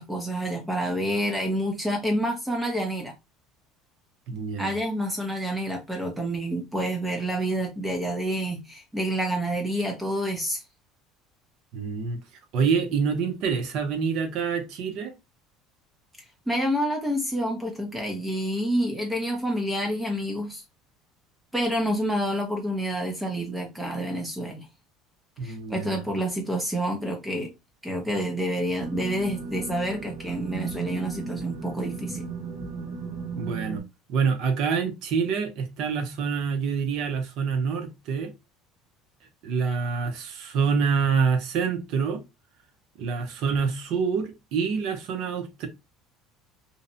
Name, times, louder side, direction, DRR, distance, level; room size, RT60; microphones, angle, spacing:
voice 1, 0.0-3.1 4.6-10.6 16.5-20.6 21.5-24.7 25.4-27.5 27.8-32.2, equal, 5° right, 0.5 m, -28 dB
voice 2, 4.3-4.7 11.7-12.2 12.5-15.2 25.4-26.0 33.3-33.8 34.1-38.3 39.4-42.2 43.0-45.7, right 5 dB, 55° right, 0.5 m, -26 dB
sound 1, 28.8-33.8, right 4 dB, 75° right, 0.9 m, -35 dB
2.6 x 2.0 x 2.5 m
cardioid pair, 155°, 0 cm